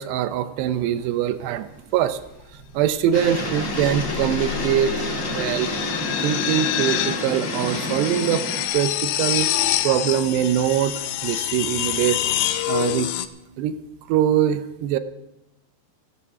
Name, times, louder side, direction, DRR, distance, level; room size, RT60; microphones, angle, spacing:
voice 1, 0.0-2.2 2.7-5.0 5.2-5.7 6.2-8.5 8.7-9.5 9.8-12.2 12.7-13.1 13.6-13.8 14.1-15.0, right 10 dB, 85° right, 12 dB, 2.8 m, -23 dB
sound 1, 0.6-1.1 3.2-13.3, left 12 dB, 90° left, 2.8 m, -27 dB
sound 2, 3.1-8.7, left 2 dB, 55° left, 0.8 m, -28 dB
15.5 x 11.0 x 5.8 m, 0.95 s
omnidirectional pair, 4.8 m